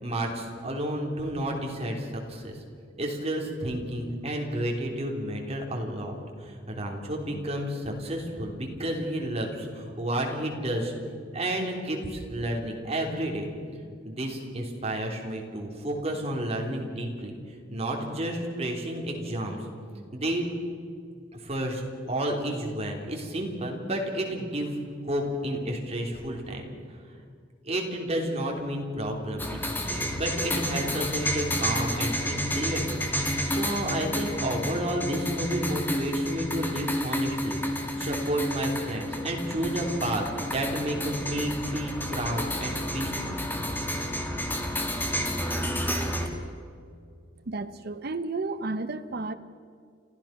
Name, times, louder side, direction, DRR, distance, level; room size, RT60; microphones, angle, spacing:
voice 1, 0.0-2.6 3.0-10.9 11.3-13.5 14.0-17.3 17.7-19.6 20.1-20.5 21.3-21.8 22.1-24.7 25.0-26.7 27.6-29.6 29.9-37.6 38.0-43.3 44.5-44.6, right 1 dB, 35° right, 1 dB, 3.4 m, -31 dB
sound 1, 29.4-46.3, equal, 10° left, 2.3 m, -30 dB
voice 2, 47.5-49.3, right 3 dB, 55° right, 10 dB, 0.8 m, -32 dB
30.0 x 14.5 x 5.9 m, 2.3 s
head